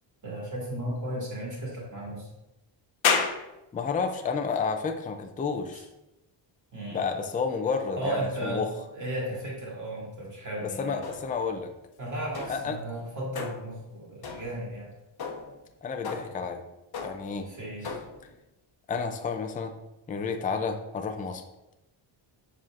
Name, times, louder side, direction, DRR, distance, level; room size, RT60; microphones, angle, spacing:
voice 1, 0.2-2.3 6.7-7.0 8.0-8.7 8.9-11.1 12.0-14.9 17.5-17.9, right 1 dB, 35° right, -5 dB, 2.3 m, -34 dB
sound 1, 3.0-16.2, left 6 dB, 80° left, 0.8 m, -37 dB
voice 2, 3.7-5.9 6.9-8.7 10.6-11.7 12.5-12.8 15.8-16.6 17.0-17.5 17.8-18.0 18.9-19.7 20.1-21.4, left 5 dB, 20° left, 5 dB, 0.3 m, -31 dB
sound 2, 11.0-11.5 12.3-12.8 13.3-13.8 14.2-14.7 15.2-15.6 16.0-16.5 16.9-17.4 17.8-18.3, left 4 dB, 50° left, 0.8 m, -39 dB
7.4 x 5.5 x 2.5 m, 0.94 s
wide cardioid pair, 175°, 50 cm